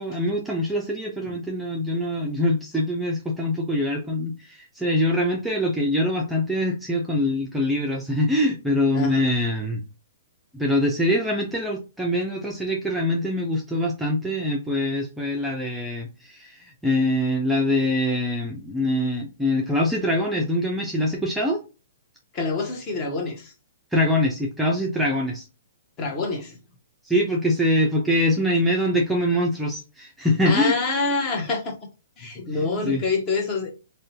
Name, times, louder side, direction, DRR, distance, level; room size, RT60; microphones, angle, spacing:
voice 1, 0.0-9.8 10.5-21.6 23.9-25.4 27.0-30.8 32.5-33.0, left 1 dB, 5° right, 0.4 m, -24 dB
voice 2, 8.9-9.2 22.3-23.5 26.0-26.6 30.4-31.8 32.2-33.7, left 3 dB, 25° left, 0.8 m, -26 dB
2.6 x 2.1 x 2.7 m
hypercardioid pair, 145°, 0 cm